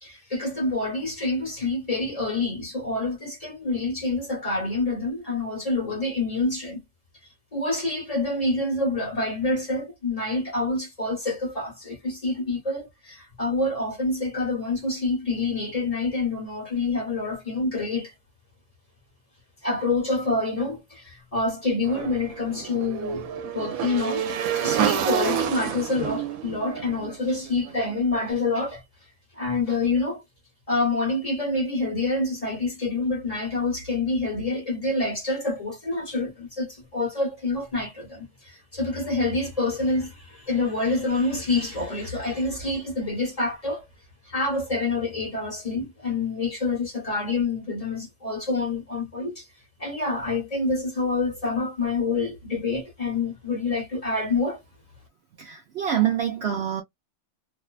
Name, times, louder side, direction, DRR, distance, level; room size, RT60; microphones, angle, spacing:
voice 1, 0.0-6.8 7.5-18.1 19.6-23.3 23.5-24.2 24.5-28.8 29.4-30.2 30.7-43.8 44.2-49.4 49.8-54.6, left 3 dB, 30° left, 1.0 m, -27 dB
Motorcycle / Engine, 21.9-28.0, right 9 dB, 80° right, 1.0 m, -29 dB
voice 2, 55.4-56.8, right 10 dB, 65° right, 0.7 m, -25 dB
2.6 x 2.1 x 2.3 m
omnidirectional pair, 1.5 m